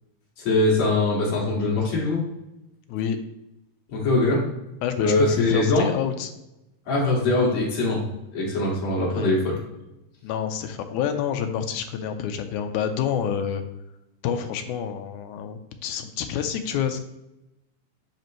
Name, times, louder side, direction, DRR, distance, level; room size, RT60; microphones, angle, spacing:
voice 1, 0.4-2.2 3.9-4.4 5.0-5.9 6.9-8.0 8.3-9.6, left 2 dB, 60° left, -4 dB, 3.2 m, -22 dB
voice 2, 4.8-6.3 9.1-9.3 10.2-13.6 14.2-17.0, left 8 dB, 85° left, 7 dB, 2.1 m, -28 dB
9.4 x 4.3 x 3.0 m, 0.92 s
omnidirectional pair, 3.5 m